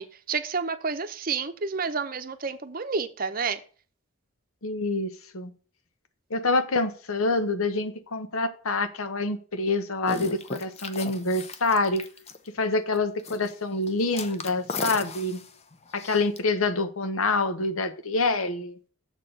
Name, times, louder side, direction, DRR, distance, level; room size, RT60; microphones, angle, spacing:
voice 1, 0.0-3.6, right 5 dB, 40° right, 10 dB, 0.7 m, -30 dB
voice 2, 4.6-5.5 6.3-12.0 12.5-15.4 15.9-18.8, left 3 dB, 90° left, 10 dB, 1.0 m, -26 dB
sound 1, 10.1-12.6 13.2-13.5 13.8-16.4, left 4 dB, 30° left, 0.7 m, -37 dB
7.3 x 4.6 x 6.4 m, 0.40 s
head